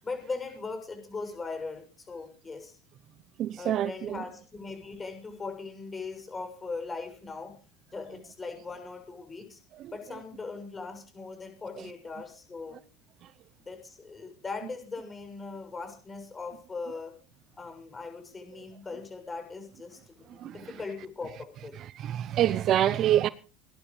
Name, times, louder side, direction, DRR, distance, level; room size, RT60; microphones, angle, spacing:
voice 1, 0.0-2.8 3.6-7.5 7.9-9.6 9.9-12.8 13.6-17.1 17.6-21.7, left 4 dB, 20° left, 6.7 m, -39 dB
voice 2, 3.4-4.2 20.4-20.5 22.0-23.3, right 11 dB, 45° right, 0.8 m, -25 dB
18.5 x 11.5 x 4.9 m
supercardioid pair, 105°, 0 cm